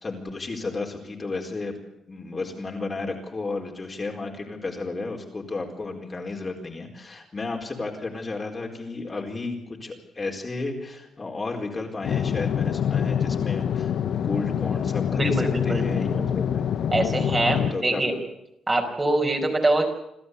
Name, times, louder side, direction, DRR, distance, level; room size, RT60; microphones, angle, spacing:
voice 1, 0.0-1.7 2.1-16.4 17.3-18.0, left 3 dB, 30° left, 1 dB, 4.4 m, -33 dB
Vehicle interior in motion repeatable, 12.0-17.7, left 8 dB, 65° left, 0.8 m, -25 dB
voice 2, 15.1-16.3 16.9-18.1 18.7-19.9, right 2 dB, 20° right, 2 dB, 5.2 m, -24 dB
28.0 x 12.5 x 8.4 m, 0.85 s
cardioid pair, 90°, 0 cm